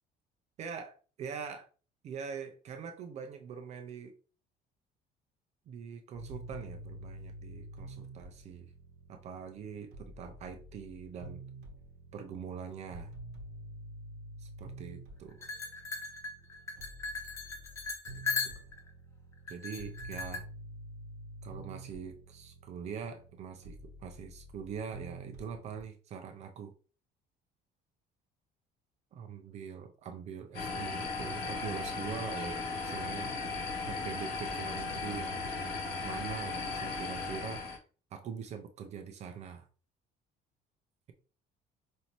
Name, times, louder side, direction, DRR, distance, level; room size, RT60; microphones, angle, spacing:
voice 1, 0.6-1.7 2.0-4.1 5.7-8.7 9.1-11.4 12.1-13.1 14.4-15.5 18.1-18.5 19.5-20.4 21.4-26.7 29.1-33.3 33.9-35.8 36.0-37.7 38.1-39.7, right 7 dB, 40° right, 5 dB, 0.5 m, -43 dB
sound 1, 6.1-25.8, right 1 dB, 75° right, 1.1 m, -49 dB
sound 2, 15.4-18.9 19.5-20.4, left 4 dB, 15° left, 0.6 m, -38 dB
sound 3, 30.5-37.8, left 4 dB, 65° left, 1.8 m, -36 dB
5.2 x 2.7 x 3.0 m, 0.38 s
cardioid pair, 175°, 17 cm